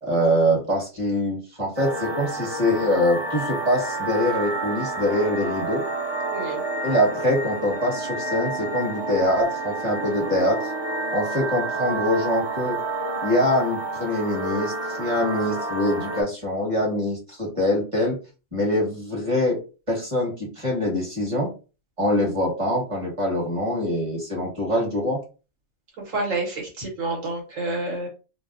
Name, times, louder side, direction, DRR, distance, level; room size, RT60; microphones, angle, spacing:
voice 1, 0.0-5.8 6.8-10.7 11.1-12.8 13.2-18.2 18.5-19.6 19.9-21.5 22.0-25.2, left 1 dB, 25° right, -3 dB, 1.3 m, -24 dB
sound 1, 1.8-16.2, right 3 dB, 45° right, 0.3 m, -29 dB
voice 2, 26.0-28.1, right 2 dB, 65° right, 0 dB, 1.5 m, -29 dB
3.9 x 2.1 x 2.6 m, 0.33 s
omnidirectional pair, 1.5 m